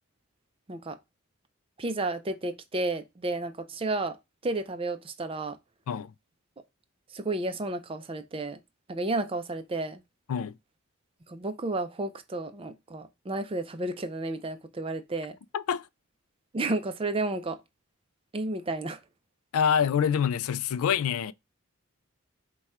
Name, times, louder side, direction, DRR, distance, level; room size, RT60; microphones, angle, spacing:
voice 1, 1.8-4.2 4.4-5.6 7.1-8.6 8.9-10.0 11.3-15.4 16.5-17.6 18.3-19.0, right 2 dB, 25° right, 0.4 m, -32 dB
voice 2, 15.5-15.9 19.5-21.3, left 7 dB, 80° left, 0.3 m, -26 dB
4.7 x 2.3 x 4.1 m
head